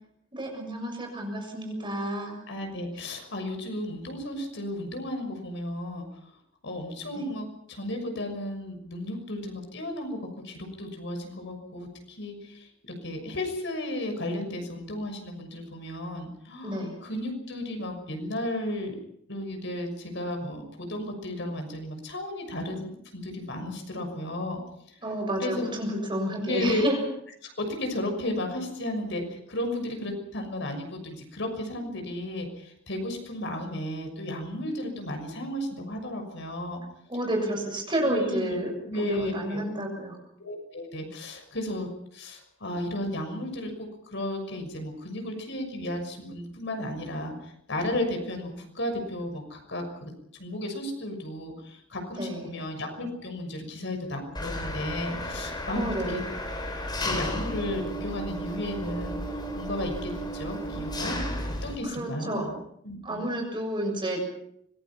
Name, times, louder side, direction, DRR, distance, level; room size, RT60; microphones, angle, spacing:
voice 1, 0.3-2.4 16.6-16.9 25.0-27.0 37.1-38.7 39.0-40.1 52.2-52.6 55.7-56.2 61.2-61.3 61.9-62.5 63.0-64.3, right 1 dB, 25° right, 3 dB, 6.9 m, -30 dB
voice 2, 2.5-6.0 6.6-10.2 10.4-12.7 13.0-19.0 19.3-24.6 25.4-25.7 26.4-26.8 27.4-36.8 38.0-39.6 40.4-47.3 47.7-50.1 50.4-56.2 57.0-59.2 59.5-61.2 61.6-62.6 62.8-63.3, left 1 dB, 65° left, 5 dB, 6.3 m, -34 dB
Engine, 54.3-61.8, equal, 20° left, 4.2 m, -33 dB
25.5 x 22.0 x 5.8 m, 0.71 s
head